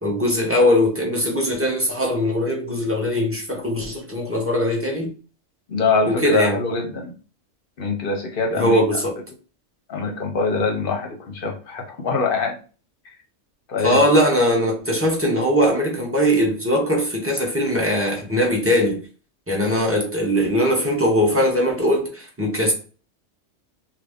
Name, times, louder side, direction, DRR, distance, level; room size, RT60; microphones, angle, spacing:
voice 1, 0.0-5.1 6.1-6.6 8.5-9.1 13.8-19.0 19.5-22.7, equal, 15° right, 0.7 m, -20 dB
voice 2, 5.7-7.1 7.8-8.8 9.9-12.6 13.7-14.0, left 4 dB, 55° left, 0.8 m, -23 dB
3.0 x 2.5 x 3.4 m
omnidirectional pair, 1.3 m